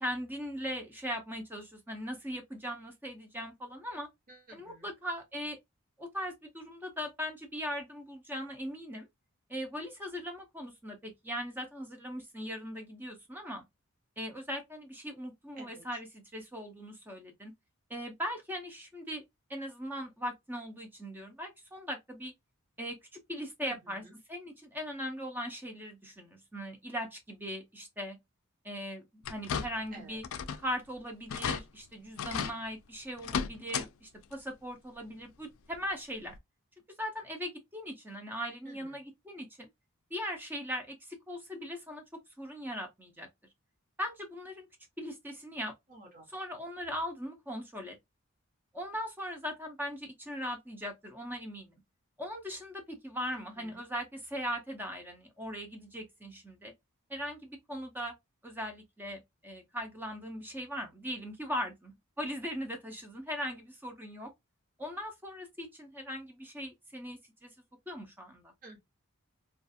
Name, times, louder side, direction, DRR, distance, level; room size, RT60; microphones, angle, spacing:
voice 1, 0.0-4.1 4.5-5.6 6.0-9.1 9.5-13.6 14.2-17.5 17.9-19.2 19.5-22.3 22.8-23.0 23.3-28.2 28.6-30.2 30.5-36.4 37.0-39.7 40.1-42.0 42.4-43.3 44.0-44.7 45.0-45.7 46.3-48.0 48.7-51.8 52.2-56.7 57.1-58.1 58.4-64.3 64.8-67.5 67.9-68.5, equal, 10° right, 0.5 m, -39 dB
voice 2, 4.3-4.9 15.6-15.8 23.6-24.1 29.9-30.2 38.6-39.0 45.9-46.2 53.3-53.8 68.6-68.8, right 2 dB, 40° right, 1.0 m, -52 dB
sound 1, 29.2-29.9 30.2-30.7 31.0-31.1 31.3-31.6 32.2-32.6 33.2-33.9 34.2-34.3 35.7-35.8 36.3-36.4, left 7 dB, 70° left, 0.3 m, -34 dB
2.4 x 2.3 x 2.6 m
head